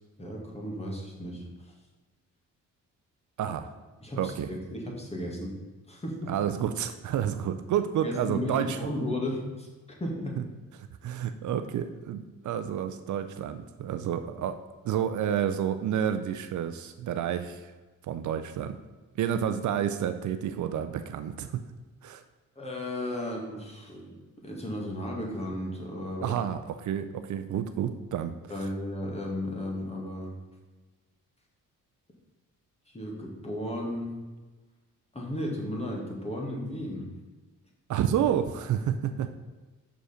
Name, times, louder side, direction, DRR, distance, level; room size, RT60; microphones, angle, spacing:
voice 1, 0.2-1.7 4.0-5.5 5.9-6.3 8.0-9.7 10.0-10.4 22.6-24.2 24.4-26.4 28.5-30.4 32.9-34.2 35.1-37.1, left 1 dB, 20° left, -1 dB, 1.9 m, -34 dB
voice 2, 3.4-3.7 4.2-4.5 6.3-8.9 10.8-14.6 14.8-17.7 18.1-18.8 19.2-21.6 22.0-22.2 26.2-28.3 37.9-39.4, right 9 dB, 60° right, 10 dB, 0.5 m, -30 dB
6.4 x 5.1 x 5.0 m, 1.3 s
cardioid pair, 105°, 34 cm